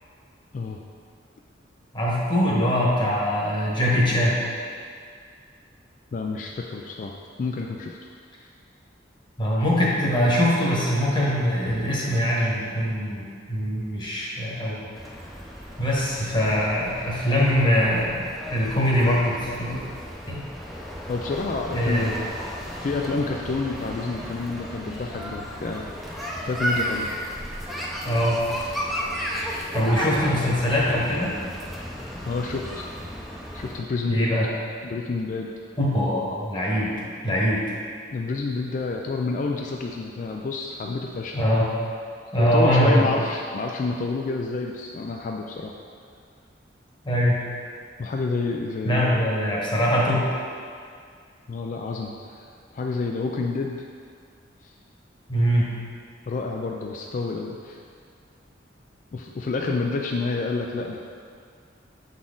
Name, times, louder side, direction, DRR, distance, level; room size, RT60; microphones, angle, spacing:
voice 1, 1.9-4.4 9.4-13.2 13.5-14.9 15.8-18.2 18.5-19.8 20.3-20.4 21.7-22.1 28.0-28.4 29.7-31.3 34.1-34.5 35.8-36.9 37.2-37.6 41.3-41.7 42.3-43.1 47.0-47.4 48.8-50.3 55.3-55.8, equal, 25° left, -5 dB, 1.1 m, -22 dB
voice 2, 6.1-7.1 7.4-8.0 21.1-22.1 22.8-25.9 26.4-27.1 32.2-32.9 33.5-34.5 34.8-35.5 38.1-41.4 42.4-45.7 48.0-49.3 51.5-52.4 52.7-53.8 54.6-54.7 56.3-57.8 59.1-61.0, left 3 dB, 45° left, 1 dB, 0.3 m, -29 dB
sound 1, 14.9-33.8, equal, ahead, 0.6 m, -34 dB
7.2 x 4.1 x 3.7 m, 2.2 s
head